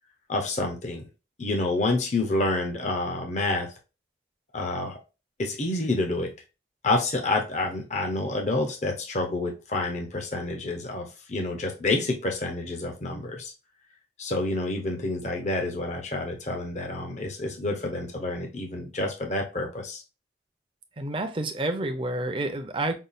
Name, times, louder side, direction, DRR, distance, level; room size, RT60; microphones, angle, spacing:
voice 1, 0.3-1.0 1.4-3.7 4.5-5.0 5.4-6.3 6.8-13.5 14.2-20.0, left 2 dB, 40° left, 0.6 m, -28 dB
voice 2, 21.0-22.9, right 2 dB, 30° right, 0.5 m, -29 dB
5.4 x 2.4 x 2.4 m
head